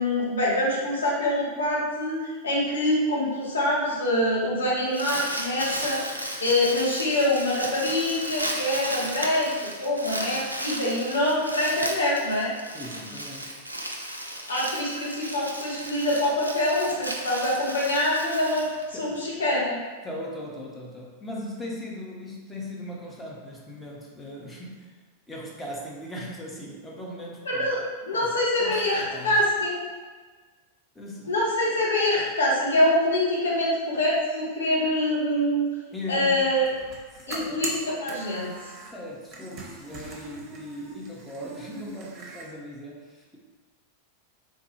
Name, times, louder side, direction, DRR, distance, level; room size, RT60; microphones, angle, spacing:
voice 1, 0.0-2.2 2.4-9.5 9.8-12.5 14.5-19.8 27.5-27.8 28.0-29.8 31.2-35.7 36.1-36.7 37.3-38.5, left 1 dB, 70° left, -5 dB, 0.8 m, -25 dB
Crumpling crinkling, 4.7-19.3, right 1 dB, 85° right, 0.3 m, -34 dB
voice 2, 12.7-13.8 18.9-19.2 20.0-24.9 25.3-27.7 28.1-28.3 28.6-29.5 30.9-31.3 35.9-36.5 37.1-37.6 38.7-43.4, equal, 10° left, -3 dB, 0.6 m, -39 dB
sound 1, 36.5-38.9 39.2-42.4, right 2 dB, 35° right, 0.6 m, -40 dB
3.1 x 2.2 x 3.1 m, 1.4 s
figure-of-eight pair, 90°, 0 cm